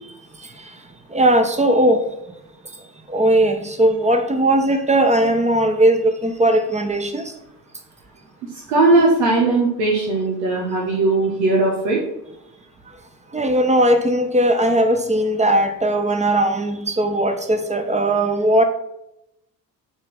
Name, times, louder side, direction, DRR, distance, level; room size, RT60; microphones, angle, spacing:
voice 1, 1.1-2.0 3.1-7.3 13.3-18.6, right 1 dB, 15° right, 6 dB, 1.3 m, -18 dB
voice 2, 8.7-12.0, right 2 dB, 70° right, -3 dB, 1.6 m, -18 dB
7.6 x 4.5 x 6.2 m, 0.86 s
figure-of-eight pair, 50°, 48 cm